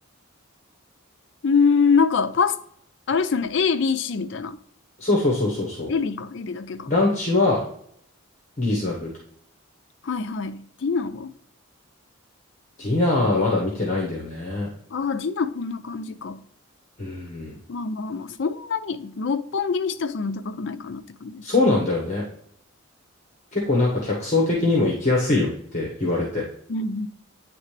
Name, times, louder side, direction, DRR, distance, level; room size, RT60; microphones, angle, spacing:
voice 1, 1.4-2.6 3.1-4.6 5.9-6.9 10.0-11.3 14.9-16.4 17.7-21.5 26.7-27.1, left 5 dB, 55° left, 0.4 m, -24 dB
voice 2, 5.0-5.9 6.9-7.6 8.6-9.1 12.8-14.7 17.0-17.6 21.4-22.2 23.5-26.4, left 2 dB, 35° left, 1.1 m, -22 dB
9.3 x 3.3 x 3.2 m
head